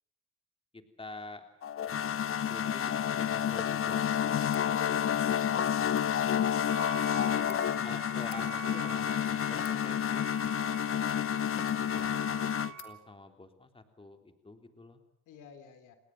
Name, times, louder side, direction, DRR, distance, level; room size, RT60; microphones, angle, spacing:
voice 1, 0.7-1.5 1.9-4.5 7.1-10.3 11.7-12.4 12.8-15.0, left 2 dB, 20° left, 6 dB, 3.4 m, -48 dB
sound 1, 1.6-12.7, left 9 dB, 45° left, 1.0 m, -30 dB
sound 2, 4.4-4.7 5.8-6.1 7.0-7.6 8.2-8.4 9.2-9.8 10.4-10.8 11.0-12.0 12.3-12.4 12.7-12.9, left 9 dB, 65° left, 2.7 m, -54 dB
voice 2, 4.7-5.7 7.1-7.8 15.3-16.0, left 6 dB, 85° left, 9 dB, 3.4 m, -51 dB
Wind instrument woodwind instrument, 6.7-13.0, right 10 dB, 70° right, 3.8 m, -46 dB
29.0 x 19.5 x 7.5 m, 0.70 s
cardioid pair, 90°, 30 cm